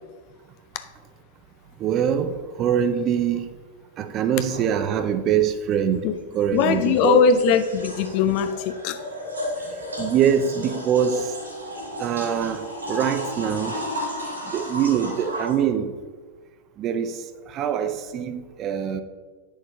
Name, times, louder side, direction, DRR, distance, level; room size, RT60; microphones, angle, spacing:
voice 1, 1.8-3.5 4.0-6.1 6.3-7.2 9.0-9.1 10.0-11.4 12.0-13.8 14.5-15.9 16.8-19.0, right 8 dB, 35° right, 10 dB, 0.6 m, -24 dB
sound 1, 4.5-4.6 6.3-15.6, equal, 75° right, 2.4 m, -34 dB
voice 2, 6.5-9.0, left 6 dB, 45° left, 10 dB, 0.6 m, -20 dB
9.7 x 6.5 x 2.8 m, 1.4 s
figure-of-eight pair, 90°, 0 cm